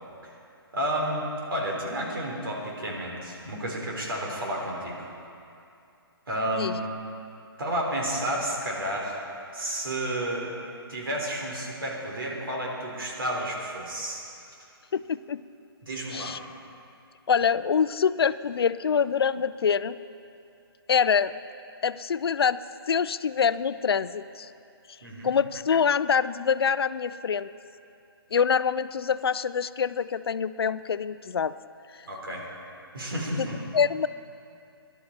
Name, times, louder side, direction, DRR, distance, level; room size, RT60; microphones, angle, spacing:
voice 1, 0.7-5.1 6.3-6.7 7.6-9.2 9.5-10.5 10.9-14.2 15.8-16.4 25.0-25.3 32.1-32.5 32.9-33.6, right 1 dB, 60° right, -2 dB, 3.6 m, -31 dB
voice 2, 14.9-15.4 16.1-16.4 17.3-20.0 20.9-21.3 21.8-22.6 22.9-24.5 25.2-27.5 28.3-31.5 33.4-33.5 33.7-34.1, left 6 dB, 70° left, 15 dB, 0.4 m, -25 dB
17.5 x 12.0 x 4.4 m, 2.6 s
hypercardioid pair, 175°, 13 cm